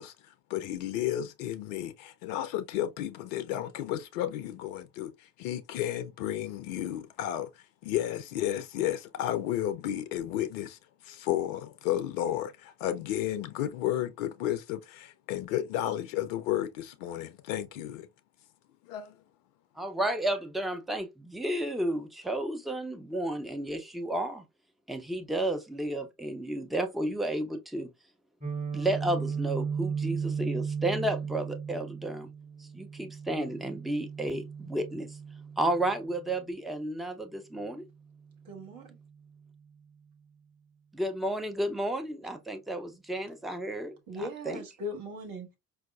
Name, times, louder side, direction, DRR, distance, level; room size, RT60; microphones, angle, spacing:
voice 1, 0.0-18.1 18.9-19.2, left 12 dB, 65° left, 0.5 m, -33 dB
voice 2, 19.8-24.4 24.9-27.9 28.7-32.3 32.6-35.2 35.6-37.9 40.9-44.6, right 1 dB, ahead, 0.4 m, -32 dB
Guitar, 28.4-36.3, right 6 dB, 15° right, 1.8 m, -35 dB
voice 3, 38.4-39.0 44.1-45.6, left 1 dB, 50° right, 1.2 m, -39 dB
4.6 x 2.2 x 2.2 m
figure-of-eight pair, 45°, 42 cm